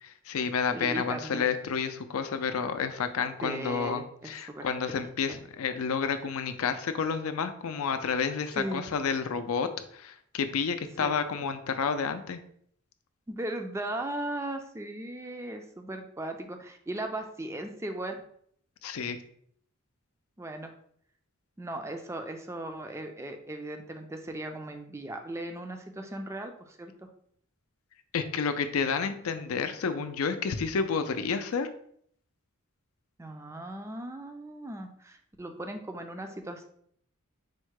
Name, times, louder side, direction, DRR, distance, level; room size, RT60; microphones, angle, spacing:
voice 1, 0.0-12.4 18.8-19.2 28.1-31.7, left 6 dB, 75° left, 9 dB, 0.4 m, -30 dB
voice 2, 0.7-1.5 3.4-5.4 8.5-8.8 11.0-11.2 13.3-18.2 20.4-20.7 21.6-26.9 33.2-36.6, right 1 dB, 10° right, 5 dB, 0.4 m, -37 dB
4.4 x 2.1 x 4.6 m, 0.65 s
head